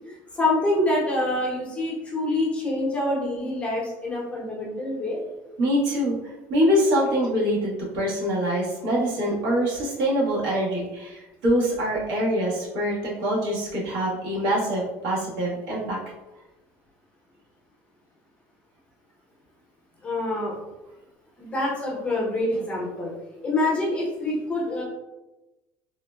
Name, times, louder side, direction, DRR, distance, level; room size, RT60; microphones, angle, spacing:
voice 1, 0.3-5.2 20.0-20.5 21.4-23.1 23.4-24.8, left 1 dB, 15° left, -4 dB, 0.7 m, -26 dB
voice 2, 5.6-6.1 6.5-16.0, equal, 70° right, -5 dB, 1.1 m, -24 dB
3.6 x 2.1 x 2.2 m, 1.0 s
cardioid pair, 145°, 7 cm